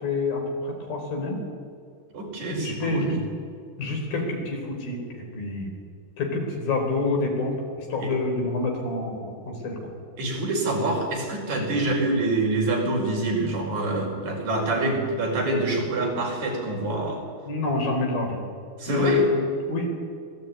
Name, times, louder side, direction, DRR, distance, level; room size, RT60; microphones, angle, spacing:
voice 1, 0.0-1.4 2.6-3.2 3.8-5.7 6.2-7.6 7.9-9.8 17.4-18.4 18.9-20.0, left 3 dB, 80° left, 2 dB, 6.4 m, -27 dB
voice 2, 2.1-3.1 8.0-8.1 10.2-17.2 18.8-19.3, right 2 dB, 55° right, -1 dB, 6.6 m, -26 dB
25.0 x 19.5 x 9.6 m, 2.2 s
omnidirectional pair, 4.1 m